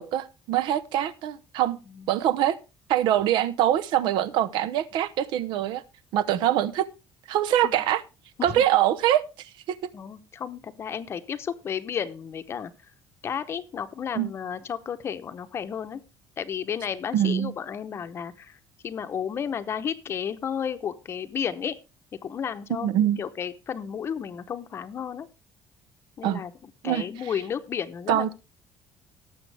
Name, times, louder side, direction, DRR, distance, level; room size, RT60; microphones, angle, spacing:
voice 1, 0.0-1.8 2.1-2.6 2.9-5.8 6.1-6.9 7.3-8.0 8.4-9.8 14.1-14.3 17.1-17.5 22.8-23.2 26.2-26.4 26.8-27.3 28.1-28.3, right 11 dB, 70° right, 0.8 m, -24 dB
voice 2, 9.9-12.7 13.2-16.0 16.4-18.6 18.8-21.7 22.2-25.3 26.2-26.5 26.8-28.3, left 8 dB, 30° left, 0.8 m, -32 dB
18.5 x 7.1 x 3.4 m
cardioid pair, 170°, 8 cm